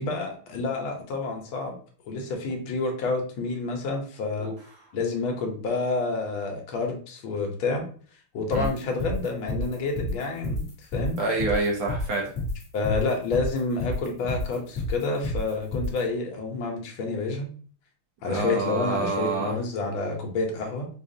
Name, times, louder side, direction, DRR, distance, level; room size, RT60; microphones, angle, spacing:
voice 1, 0.0-1.8 2.1-4.5 4.9-7.8 8.3-10.6 10.9-11.2 12.7-17.5 18.2-20.9, left 3 dB, 70° left, 2 dB, 1.6 m, -29 dB
sound 1, 8.5-16.0, left 2 dB, 40° left, 1.4 m, -29 dB
voice 2, 11.2-12.3 18.3-19.5, right 3 dB, 85° right, -2 dB, 2.2 m, -27 dB
5.1 x 2.4 x 2.6 m, 0.43 s
omnidirectional pair, 2.4 m